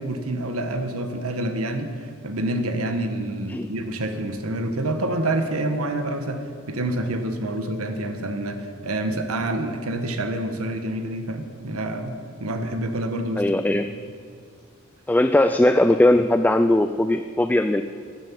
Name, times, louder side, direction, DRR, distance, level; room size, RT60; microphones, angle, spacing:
voice 1, 0.0-13.4, right 1 dB, 85° right, 6 dB, 1.4 m, -27 dB
voice 2, 13.4-13.9 15.1-17.8, left 1 dB, 10° left, 9 dB, 0.3 m, -19 dB
13.0 x 11.0 x 8.5 m, 2.2 s
head